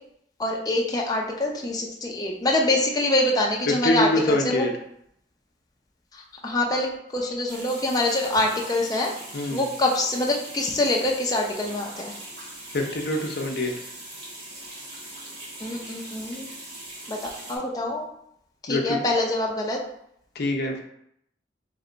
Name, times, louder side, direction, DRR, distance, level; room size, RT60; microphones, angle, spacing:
voice 1, 0.4-4.7 6.1-9.1 9.5-12.1 15.6-16.5 17.1-17.2 17.5-18.1 18.7-19.8, left 1 dB, 20° left, -1 dB, 0.6 m, -25 dB
voice 2, 3.7-4.7 9.3-9.6 12.7-13.7 18.7-19.0 20.3-20.8, left 1 dB, 60° left, 2 dB, 0.7 m, -25 dB
sound 1, 7.5-17.6, right 1 dB, 65° right, 1.6 m, -41 dB
3.4 x 3.3 x 3.9 m, 0.74 s
head